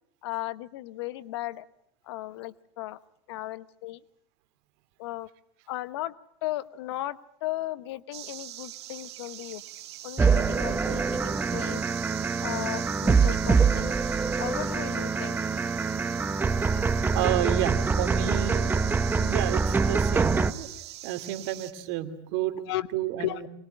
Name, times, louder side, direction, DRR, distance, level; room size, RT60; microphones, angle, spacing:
voice 1, 0.2-1.7 2.0-3.0 3.3-4.0 5.0-5.3 5.7-6.1 6.4-9.6 10.0-11.9 12.4-13.9 14.4-15.4 22.7-22.9 23.2-23.5, left 16 dB, 75° left, 17 dB, 1.1 m, -35 dB
sound 1, 8.1-21.7, right 14 dB, 85° right, 1.8 m, -42 dB
sound 2, 10.2-20.5, right 4 dB, 15° right, 1.0 m, -25 dB
voice 2, 17.1-20.7 21.0-22.6 22.9-23.5, right 13 dB, 65° right, 9 dB, 2.5 m, -31 dB
23.5 x 20.5 x 8.6 m, 0.73 s
supercardioid pair, 115°, 14 cm